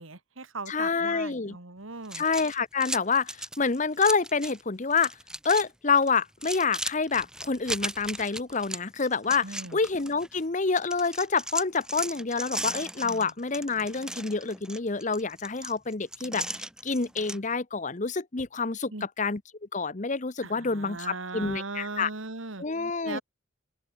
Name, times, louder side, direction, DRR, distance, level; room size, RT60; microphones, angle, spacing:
voice 1, 0.0-2.2 9.4-9.8 13.0-13.3 18.9-19.1 20.4-22.6 23.0-23.2, right 3 dB, 80° right, 2.5 m, -38 dB
voice 2, 0.7-1.6 2.1-5.1 5.4-18.9 19.2-19.4 19.7-22.1 22.6-23.2, left 4 dB, 40° left, 0.9 m, -27 dB
sound 1, 2.0-4.6 4.9-5.7 5.9-10.4 10.8-17.4, right 1 dB, 5° right, 2.8 m, -37 dB
head